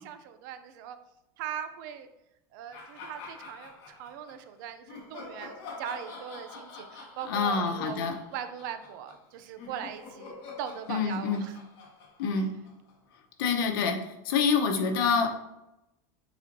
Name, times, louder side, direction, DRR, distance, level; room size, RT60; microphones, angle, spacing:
voice 1, 0.0-1.0 1.4-2.1 2.5-11.6, right 9 dB, 65° right, 9 dB, 0.6 m, -40 dB
sound 1, 2.7-4.4 4.9-13.1, left 4 dB, 45° left, 1.8 m, -46 dB
voice 2, 7.3-8.1 10.9-11.4 12.2-12.5 13.4-15.4, left 5 dB, 85° left, 4 dB, 1.1 m, -26 dB
8.1 x 4.3 x 2.8 m, 0.91 s
supercardioid pair, 160°, 11 cm